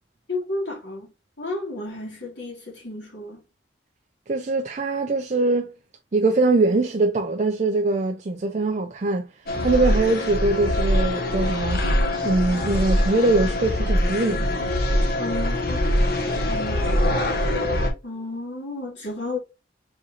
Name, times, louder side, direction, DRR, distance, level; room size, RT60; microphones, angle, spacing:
voice 1, 0.3-1.1 1.4-3.4 15.2-17.3 18.0-19.4, left 2 dB, 70° left, 2.5 m, -32 dB
voice 2, 4.3-5.7 6.1-9.3 9.6-11.8 12.2-14.4, right 2 dB, 40° right, 0.4 m, -22 dB
sound 1, 9.5-17.9, left 1 dB, 55° left, 1.0 m, -23 dB
4.5 x 3.7 x 2.8 m
head